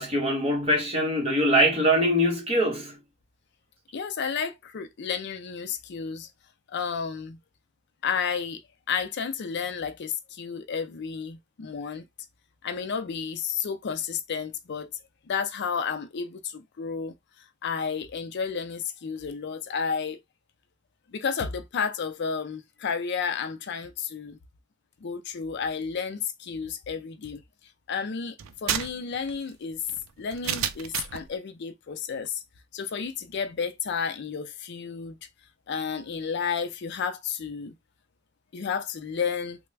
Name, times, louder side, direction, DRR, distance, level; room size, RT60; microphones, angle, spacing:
voice 1, 0.0-3.0, equal, 30° right, 1.2 m, -23 dB
voice 2, 3.9-6.3 6.7-7.4 8.0-8.6 8.9-12.1 12.6-14.9 15.3-17.1 17.6-20.2 21.1-24.4 25.0-27.4 27.9-29.8 30.2-32.4 32.7-35.2 35.7-37.7 38.5-39.6, left 6 dB, 55° left, 0.4 m, -31 dB
sound 1, 28.4-31.3, right 9 dB, 90° right, 0.4 m, -32 dB
3.3 x 2.1 x 3.2 m
head